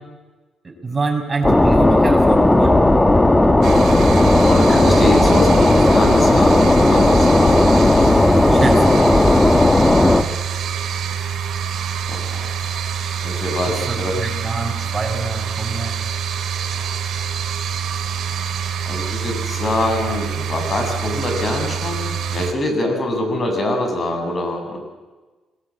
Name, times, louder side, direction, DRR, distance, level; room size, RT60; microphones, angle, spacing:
voice 1, 0.6-2.9 8.5-9.2 13.6-16.0, right 3 dB, 25° right, 2 dB, 6.6 m, -26 dB
sound 1, 1.4-10.2, left 2 dB, 15° left, 1.5 m, -14 dB
sound 2, 3.6-22.5, right 7 dB, 65° right, 3.0 m, -26 dB
voice 2, 4.4-7.7 12.1-12.7 13.2-14.1 18.9-24.8, left 1 dB, 40° left, 4 dB, 7.5 m, -24 dB
28.5 x 20.5 x 8.6 m, 1.3 s
cardioid pair, 90°, 0 cm